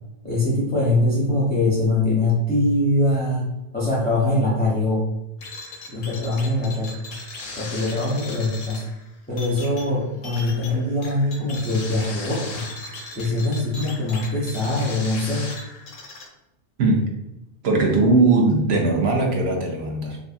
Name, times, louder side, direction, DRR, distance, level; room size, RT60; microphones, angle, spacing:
voice 1, 0.2-5.1 5.9-7.0 7.6-8.8 9.3-12.7 13.1-15.5, left 2 dB, 15° left, -5 dB, 0.3 m, -22 dB
sound 1, 5.4-16.3, left 3 dB, 60° left, 0.6 m, -38 dB
voice 2, 17.6-20.2, right 3 dB, 75° right, 1 dB, 0.9 m, -19 dB
2.6 x 2.6 x 2.4 m, 0.92 s
omnidirectional pair, 1.1 m